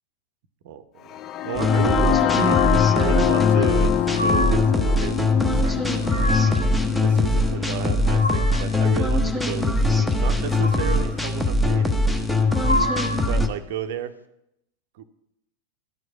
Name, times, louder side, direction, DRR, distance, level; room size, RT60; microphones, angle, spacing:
voice 1, 0.6-1.1 1.4-2.6 2.9-5.2 5.6-5.8 7.0-12.1 13.3-14.1 14.9-15.0, right 8 dB, 50° right, 9 dB, 0.6 m, -32 dB
sound 1, 1.1-9.0, left 13 dB, 30° left, 0.3 m, -25 dB
sound 2, 1.5-13.5, left 2 dB, 5° left, 0.8 m, -21 dB
sound 3, 2.4-3.0 3.8-4.8 5.8-6.8 7.7-8.8 10.4-11.2 12.3-13.4, left 1 dB, 85° left, 0.5 m, -29 dB
12.0 x 4.8 x 6.1 m, 0.82 s
figure-of-eight pair, 90°, 0 cm